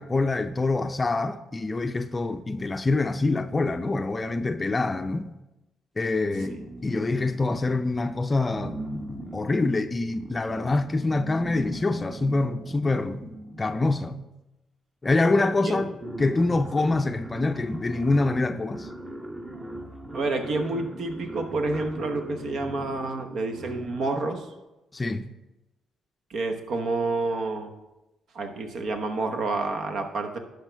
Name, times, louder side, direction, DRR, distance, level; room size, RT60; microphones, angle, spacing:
voice 1, 0.0-5.3 6.0-6.6 6.8-13.3 13.6-14.2 15.0-18.9 24.9-25.3, left 3 dB, 25° left, 0.5 m, -25 dB
sound 1, 6.2-8.0 8.5-14.2 15.1-15.2 15.5-24.3, right 1 dB, 20° right, 1.0 m, -40 dB
voice 2, 15.3-15.8 20.1-24.5 26.3-27.7 28.3-30.4, right 3 dB, 65° right, 1.0 m, -29 dB
12.0 x 5.1 x 3.4 m
cardioid pair, 90°, 0 cm